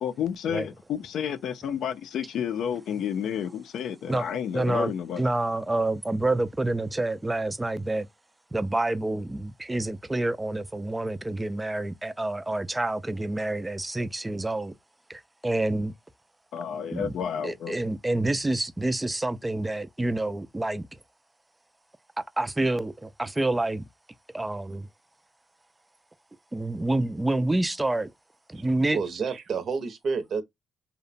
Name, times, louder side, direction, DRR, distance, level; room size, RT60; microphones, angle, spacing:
voice 1, 0.0-5.2 16.5-17.8, left 8 dB, 75° left, 0.4 m, -31 dB
voice 2, 4.5-8.1 8.5-14.7 15.1-15.9 16.9-17.1 17.4-21.0 22.2-23.8 24.3-24.9 26.5-28.1 28.5-29.0, right 2 dB, 15° right, 0.3 m, -28 dB
voice 3, 28.5-30.4, right 5 dB, 55° right, 0.6 m, -30 dB
2.8 x 2.1 x 2.5 m
cardioid pair, 90°, 0 cm